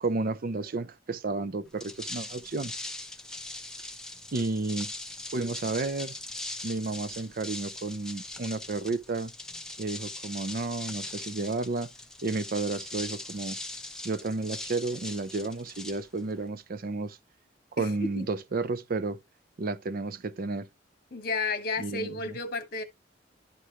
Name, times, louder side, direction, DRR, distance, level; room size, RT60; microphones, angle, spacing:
voice 1, 0.0-2.7 4.3-4.9 5.3-6.2 6.6-9.3 9.8-11.9 12.2-13.6 14.0-17.2 17.8-19.2 19.6-20.7 21.8-22.4, right 3 dB, 50° right, 0.5 m, -32 dB
sound 1, 1.7-16.5, left 2 dB, 5° left, 1.0 m, -41 dB
voice 2, 21.1-22.8, left 4 dB, 55° left, 1.4 m, -32 dB
11.5 x 4.9 x 2.9 m
head